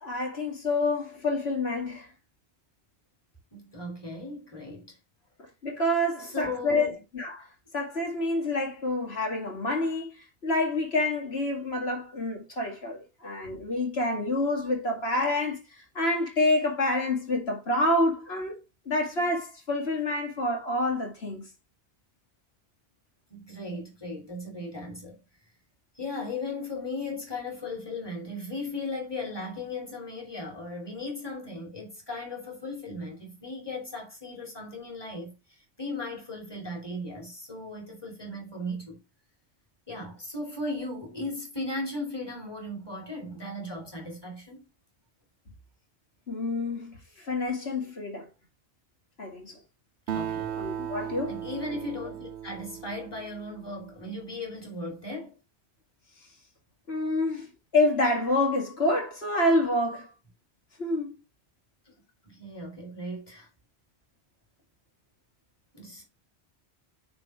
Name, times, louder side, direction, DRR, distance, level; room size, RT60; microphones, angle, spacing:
voice 1, 0.0-2.1 5.6-7.5 7.7-18.6 18.9-21.4 46.3-48.3 49.2-49.6 50.6-51.3 56.9-57.5 57.7-60.1 60.8-61.2, left 2 dB, 70° left, 2.6 m, -28 dB
voice 2, 3.5-5.0 6.2-6.9 23.3-25.2 25.9-39.0 39.9-44.7 50.1-50.6 51.3-55.4 62.2-63.5 65.7-66.0, left 2 dB, 20° left, 2.9 m, -37 dB
Acoustic guitar, 50.1-53.9, right 9 dB, 85° right, 1.0 m, -36 dB
9.3 x 3.6 x 4.8 m
omnidirectional pair, 1.1 m